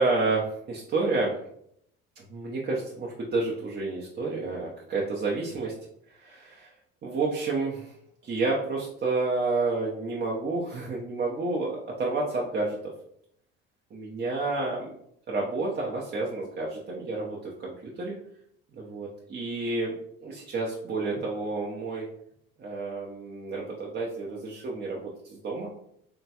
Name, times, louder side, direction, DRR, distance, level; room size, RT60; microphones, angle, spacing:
voice 1, 0.0-1.3 2.2-5.7 6.1-6.7 7.0-7.9 8.2-12.8 13.9-15.0 15.3-18.2 18.7-22.1 22.6-25.7, right 3 dB, 35° right, -3 dB, 0.6 m, -30 dB
2.9 x 2.3 x 2.8 m, 0.72 s
hypercardioid pair, 60°, 30 cm